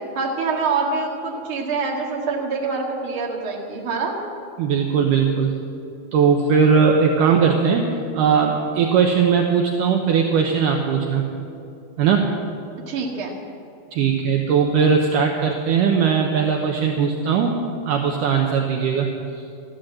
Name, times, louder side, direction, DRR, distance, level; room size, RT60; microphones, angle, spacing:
voice 1, 0.2-4.2 12.9-13.3, right 4 dB, 40° right, -1 dB, 2.3 m, -25 dB
voice 2, 4.6-5.5 6.1-7.9 8.1-11.2 12.0-12.3 13.9-17.6 17.9-19.1 19.4-19.5, right 6 dB, 70° right, 2 dB, 2.2 m, -19 dB
14.0 x 11.5 x 7.6 m, 2.7 s
omnidirectional pair, 4.4 m